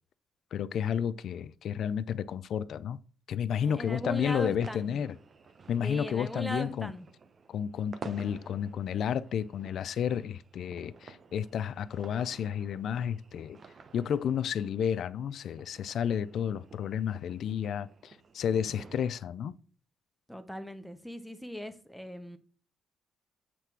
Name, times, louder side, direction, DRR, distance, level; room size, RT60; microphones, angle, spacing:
voice 1, 0.5-3.0 3.3-5.1 5.7-6.9 7.5-13.6 13.9-19.5, left 8 dB, 65° left, 0.4 m, -31 dB
voice 2, 3.6-5.0 5.8-7.1 20.3-22.4, equal, ahead, 0.9 m, -39 dB
sound 1, 4.1-19.1, right 5 dB, 45° right, 0.7 m, -52 dB
7.6 x 3.3 x 5.9 m
cardioid pair, 90°, 0 cm